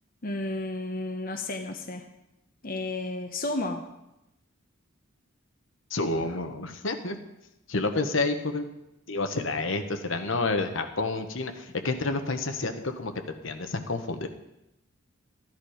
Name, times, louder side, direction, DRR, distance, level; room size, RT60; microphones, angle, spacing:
voice 1, 0.2-2.0 2.6-3.8, left 2 dB, 45° left, 4 dB, 1.0 m, -32 dB
voice 2, 5.9-7.1 7.7-8.6 9.1-11.5 11.8-13.1 13.4-14.3, left 3 dB, 65° left, 7 dB, 1.2 m, -29 dB
14.5 x 10.5 x 5.0 m, 0.90 s
head